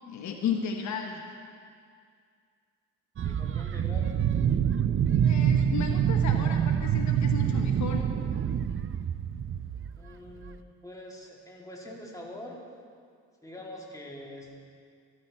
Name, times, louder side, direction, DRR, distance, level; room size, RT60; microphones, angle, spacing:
voice 1, 0.1-1.2 5.2-8.1, left 6 dB, 70° left, 3 dB, 1.1 m, -34 dB
voice 2, 3.2-4.1 9.9-12.6 13.4-14.5, left 1 dB, 10° left, -2 dB, 2.5 m, -44 dB
sound 1, 3.2-10.0 10.4-10.5, right 8 dB, 45° right, 0.6 m, -26 dB
14.5 x 12.5 x 4.3 m, 2.2 s
cardioid pair, 90°, 30 cm